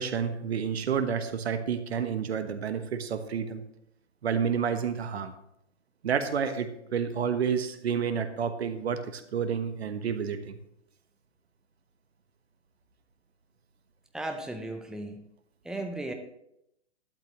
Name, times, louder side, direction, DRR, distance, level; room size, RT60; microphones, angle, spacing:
voice 1, 0.0-3.6 4.2-5.3 6.0-10.6, right 7 dB, 60° right, 10 dB, 1.3 m, -30 dB
voice 2, 14.1-15.2 15.6-16.1, right 2 dB, ahead, 4 dB, 0.5 m, -35 dB
12.0 x 11.5 x 3.0 m, 0.81 s
figure-of-eight pair, 120°, 35 cm